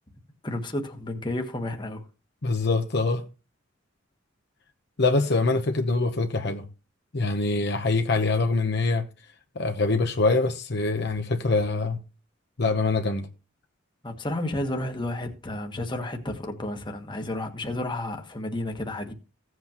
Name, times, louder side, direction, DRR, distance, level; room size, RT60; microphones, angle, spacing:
voice 1, 0.4-2.0 14.0-19.1, left 1 dB, 25° left, 1.4 m, -31 dB
voice 2, 2.4-3.3 5.0-6.6 7.1-9.0 9.5-12.0 12.6-13.3, left 3 dB, 55° left, 1.0 m, -24 dB
16.0 x 7.8 x 3.0 m
head